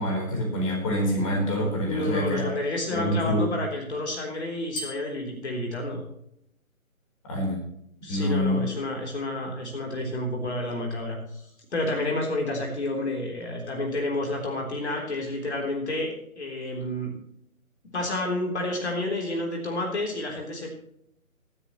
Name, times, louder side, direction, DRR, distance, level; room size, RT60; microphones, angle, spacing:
voice 1, 0.0-2.5 2.9-3.6 7.2-7.6 8.1-8.7, equal, 25° left, -1 dB, 4.1 m, -26 dB
voice 2, 1.9-6.0 8.0-11.4 11.7-17.1 17.9-20.7, left 1 dB, 50° left, 0 dB, 3.6 m, -30 dB
Bicycle bell, 4.7-5.4, left 1 dB, 10° left, 1.2 m, -38 dB
15.0 x 13.0 x 3.1 m, 0.74 s
figure-of-eight pair, 160°, 43 cm